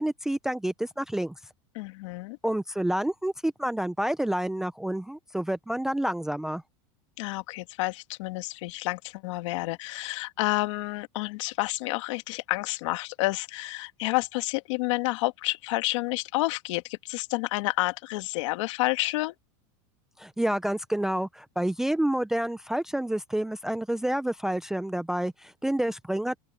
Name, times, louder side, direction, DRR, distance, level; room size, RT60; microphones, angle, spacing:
voice 1, 0.0-1.3 2.4-6.6 20.2-26.4, right 1 dB, 5° right, 0.5 m, -28 dB
voice 2, 1.8-2.4 7.2-19.3, left 21 dB, 60° left, 1.8 m, -29 dB
open air
supercardioid pair, 160°, 17 cm